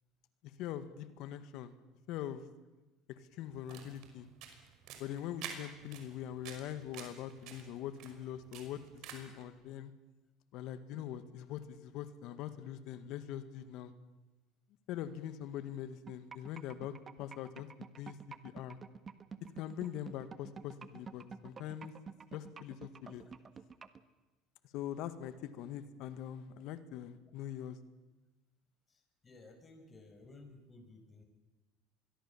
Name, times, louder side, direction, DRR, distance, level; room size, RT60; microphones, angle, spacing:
voice 1, 0.4-1.8 2.1-2.4 3.2-4.3 5.0-9.9 10.5-13.9 14.9-18.2 18.4-18.8 19.6-21.9 22.3-23.2 24.7-27.8, left 10 dB, 65° left, 11 dB, 1.9 m, -43 dB
sound 1, 3.5-9.4, right 8 dB, 65° right, 5.5 m, -50 dB
sound 2, 16.1-24.0, right 5 dB, 30° right, 1.6 m, -48 dB
voice 2, 23.0-23.4 28.9-31.2, left 2 dB, 25° left, 5 dB, 6.0 m, -57 dB
25.5 x 21.5 x 7.4 m, 1.1 s
supercardioid pair, 95°, 0 cm